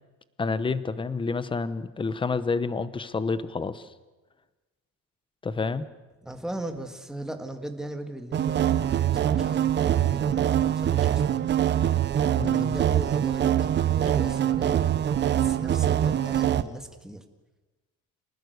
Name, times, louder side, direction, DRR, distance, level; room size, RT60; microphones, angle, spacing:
voice 1, 0.4-3.9 5.4-5.8 12.4-12.8, left 4 dB, 15° left, 14 dB, 1.0 m, -29 dB
voice 2, 6.2-11.4 12.4-14.9 15.1-17.2, right 1 dB, ahead, 5 dB, 1.8 m, -38 dB
sound 1, 8.3-16.6, right 10 dB, 35° right, 0.9 m, -24 dB
28.5 x 19.5 x 8.1 m, 1.2 s
cardioid pair, 160°, 32 cm